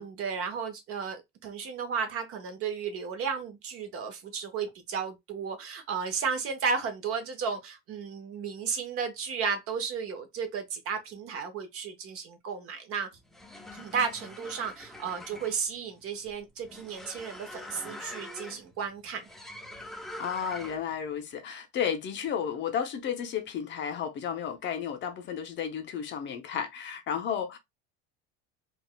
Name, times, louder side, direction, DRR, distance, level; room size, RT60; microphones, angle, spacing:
voice 1, 0.0-13.1 13.7-19.3, right 6 dB, 50° right, 1.0 m, -33 dB
sound 1, 13.2-21.0, left 1 dB, ahead, 0.4 m, -44 dB
voice 2, 20.2-27.6, left 8 dB, 40° left, 0.6 m, -33 dB
3.9 x 2.4 x 2.2 m
supercardioid pair, 120°, 30 cm